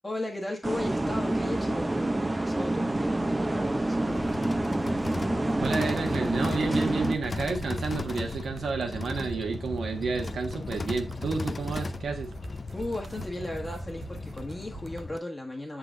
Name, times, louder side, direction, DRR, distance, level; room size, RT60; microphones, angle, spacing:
voice 1, 0.0-4.3 12.7-15.8, left 1 dB, 20° left, 1.5 m, -36 dB
sound 1, 0.6-7.2, right 2 dB, 15° right, 0.6 m, -28 dB
sound 2, 4.1-15.2, left 3 dB, 35° left, 0.4 m, -37 dB
voice 2, 5.6-12.3, right 4 dB, 85° right, 1.2 m, -31 dB
sound 3, 6.6-15.1, right 5 dB, 65° right, 0.7 m, -44 dB
7.0 x 3.9 x 3.7 m
wide cardioid pair, 125°, 0 cm